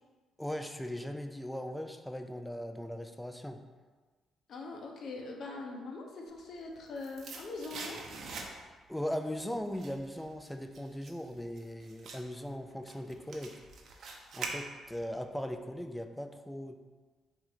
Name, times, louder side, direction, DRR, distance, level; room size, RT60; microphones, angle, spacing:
voice 1, 0.4-3.6 8.9-13.6 14.3-16.8, equal, 5° left, 6 dB, 0.3 m, -39 dB
voice 2, 4.5-8.0, left 3 dB, 60° left, 1 dB, 0.7 m, -42 dB
sound 1, 6.5-8.9 9.2-15.1 15.4-15.5, right 4 dB, 60° right, 0.7 m, -45 dB
4.1 x 2.5 x 4.7 m, 1.4 s
cardioid pair, 90°, 0 cm